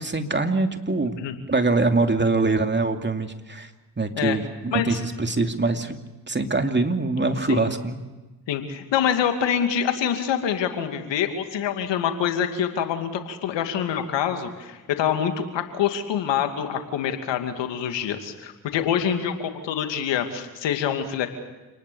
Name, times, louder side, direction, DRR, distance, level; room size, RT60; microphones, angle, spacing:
voice 1, 0.0-1.2 1.5-3.7 4.0-5.9 6.3-8.0, right 3 dB, 25° right, 5 dB, 2.7 m, -23 dB
voice 2, 8.5-21.3, left 9 dB, 70° left, 6 dB, 2.6 m, -26 dB
28.0 x 19.5 x 7.1 m, 1.2 s
hypercardioid pair, 45°, 45 cm